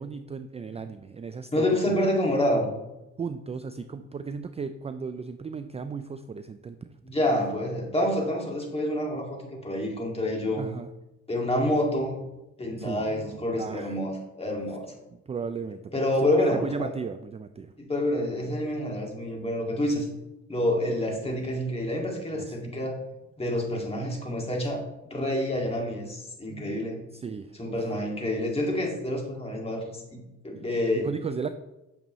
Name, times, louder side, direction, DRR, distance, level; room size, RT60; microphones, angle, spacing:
voice 1, 0.0-2.0 3.2-6.9 10.6-10.9 12.8-13.1 13.6-14.0 15.1-15.8 16.3-17.7 22.3-22.6 27.1-27.8 31.0-31.5, right 5 dB, 20° right, 10 dB, 0.3 m, -35 dB
voice 2, 1.5-2.7 7.0-10.6 11.3-12.2 12.6-14.9 15.9-16.9 17.8-20.1 20.5-23.0 23.4-24.8 25.1-27.0 27.6-31.1, left 1 dB, 20° left, 0 dB, 2.1 m, -28 dB
8.8 x 6.7 x 3.1 m, 0.96 s
cardioid pair, 90°, 30 cm